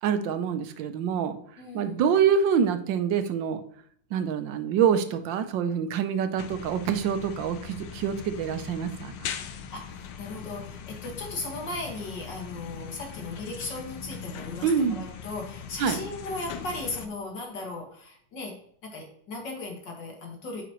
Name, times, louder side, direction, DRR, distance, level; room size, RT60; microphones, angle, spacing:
voice 1, 0.0-1.4 1.7-3.6 4.1-9.3 14.6-15.1 15.8-16.0, right 7 dB, 90° right, 9 dB, 1.4 m, -26 dB
voice 2, 1.6-2.0 9.4-18.5 18.8-20.6, left 2 dB, 75° left, 0 dB, 2.4 m, -37 dB
sound 1, 6.4-17.1, left 7 dB, 90° left, 1.4 m, -40 dB
9.2 x 5.0 x 3.0 m, 0.63 s
omnidirectional pair, 2.0 m